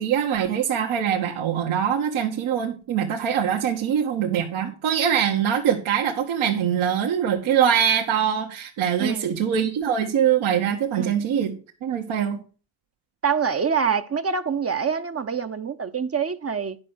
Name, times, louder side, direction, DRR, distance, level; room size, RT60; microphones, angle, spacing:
voice 1, 0.0-11.5 11.8-12.4, right 8 dB, 65° right, 1.6 m, -23 dB
voice 2, 13.2-16.8, right 6 dB, 30° right, 0.9 m, -25 dB
10.5 x 5.6 x 6.2 m
supercardioid pair, 70°, 50 cm